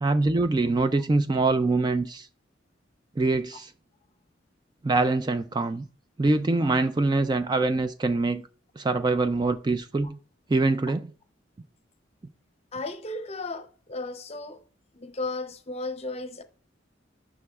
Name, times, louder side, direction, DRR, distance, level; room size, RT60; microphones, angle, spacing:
voice 1, 0.0-2.3 3.2-3.7 4.8-5.8 6.2-8.4 8.8-10.2 10.5-11.0, right 3 dB, 20° right, 0.3 m, -24 dB
voice 2, 12.7-14.6 14.9-16.4, left 2 dB, 35° left, 0.7 m, -35 dB
12.5 x 6.0 x 2.3 m
head